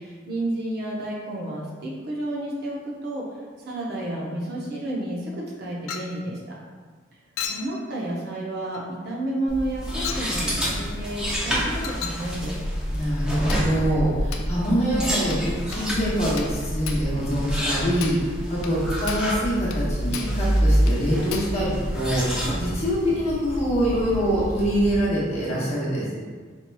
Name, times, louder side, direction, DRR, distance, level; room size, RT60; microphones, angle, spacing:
voice 1, 0.0-3.2 3.7-6.4 7.5-12.6, right 1 dB, 50° right, -5 dB, 0.7 m, -31 dB
Chink clink, 5.9-6.2 7.4-7.7 8.7-8.9 10.0-10.3 11.8-12.3 13.5-13.7 14.3-14.5 15.3-15.5 15.7-15.9 16.4-16.6 16.9-17.1 17.6-17.7 18.0-18.3 18.6-18.8 19.1-19.4 19.7-19.8 20.1-20.4 20.9-21.0 21.3-21.6, left 7 dB, 85° left, 0.3 m, -35 dB
sound 1, 9.5-25.0, equal, 5° right, 0.4 m, -27 dB
voice 2, 12.9-26.1, equal, 35° left, -7 dB, 0.9 m, -25 dB
4.4 x 2.8 x 2.2 m, 1.6 s
head